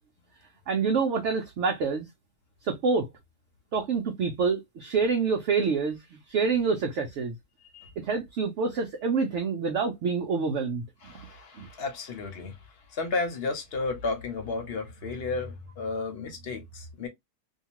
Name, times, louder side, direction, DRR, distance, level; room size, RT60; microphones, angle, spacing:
voice 1, 0.7-2.0 2.6-3.1 3.7-7.3 8.0-10.8 11.6-11.7, right 5 dB, 60° right, 0.8 m, -27 dB
voice 2, 7.6-7.9 11.0-12.6 12.9-17.1, left 3 dB, 50° left, 0.9 m, -33 dB
2.8 x 2.3 x 2.8 m
omnidirectional pair, 1.6 m